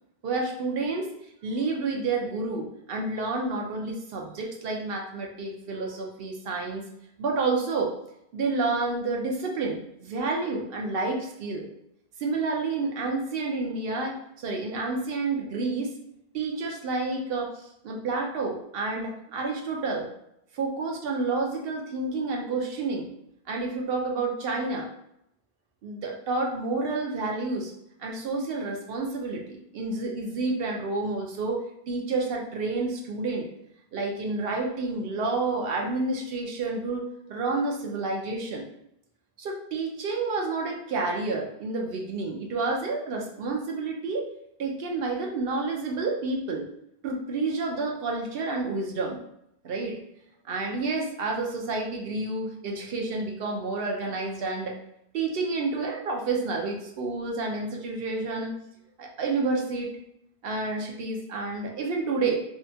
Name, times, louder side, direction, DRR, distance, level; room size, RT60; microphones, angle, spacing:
voice 1, 0.2-1.1 1.4-6.8 7.2-7.9 8.3-11.7 12.2-15.9 16.3-20.1 20.5-23.1 23.5-24.9 25.8-27.7 28.0-33.5 33.9-38.6 39.4-44.3 44.6-46.7 47.0-49.2 49.6-50.0 50.4-54.8 55.1-58.5 59.0-59.9 60.4-62.4, right 3 dB, 70° right, 0 dB, 0.7 m, -29 dB
2.7 x 2.2 x 2.6 m, 0.78 s
omnidirectional pair, 1.1 m